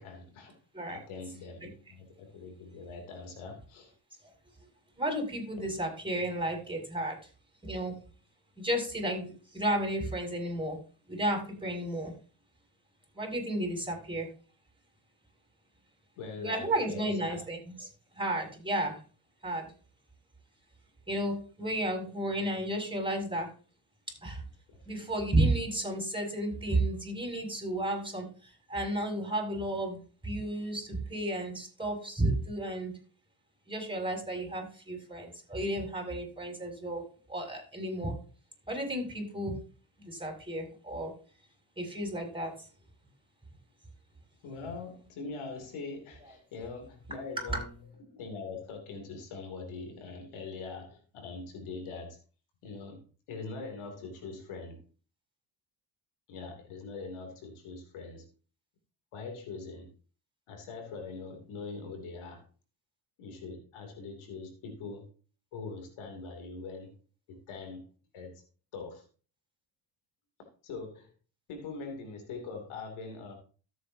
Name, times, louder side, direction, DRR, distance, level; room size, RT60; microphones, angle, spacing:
voice 1, 0.0-0.6 0.9-3.9 16.2-17.4 24.7-24.9 44.4-47.7 48.1-52.2 52.6-54.8 56.3-58.3 59.1-59.9 60.5-62.4 63.2-65.1 65.5-66.9 67.3-67.8 68.1-68.3 68.7-69.0 70.6-71.1 71.5-73.3, left 4 dB, 85° left, 4 dB, 3.0 m, -42 dB
voice 2, 5.0-7.2 7.6-8.0 8.6-10.8 11.1-12.1 13.1-14.3 16.4-17.9 18.1-19.0 19.4-19.7 21.1-23.5 24.2-24.4 24.9-33.0 33.7-37.0 37.3-38.1 38.7-39.6 40.0-41.2 41.8-42.7 47.4-47.6, right 1 dB, 10° right, 2 dB, 6.5 m, -32 dB
13.5 x 8.2 x 2.8 m, 0.38 s
supercardioid pair, 55°, 48 cm